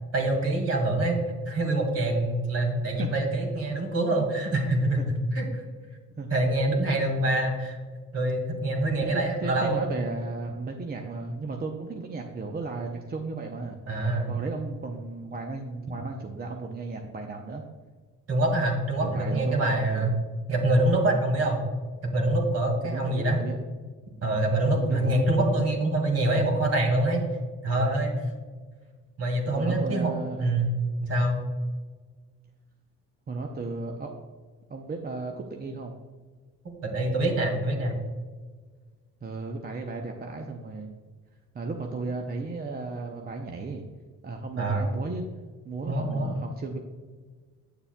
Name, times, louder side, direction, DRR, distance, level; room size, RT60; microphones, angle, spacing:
voice 1, 0.1-1.2 1.5-5.0 5.3-5.6 6.3-7.8 8.1-9.9 13.9-14.3 18.3-20.1 20.5-21.7 22.0-23.4 24.2-27.2 27.6-28.2 29.2-30.1 30.4-30.7 31.0-31.4 36.8-38.0 44.6-44.8 45.9-46.3, right 1 dB, 55° right, 2 dB, 1.9 m, -25 dB
voice 2, 9.0-13.8 14.3-17.6 19.0-20.1 22.8-23.6 24.8-25.3 29.5-30.5 33.3-34.1 34.7-36.0 39.2-40.9 41.5-43.8 44.2-45.3 45.6-46.8, right 3 dB, 30° right, 2 dB, 0.6 m, -35 dB
8.5 x 6.7 x 2.2 m, 1.5 s
cardioid pair, 90°, 30 cm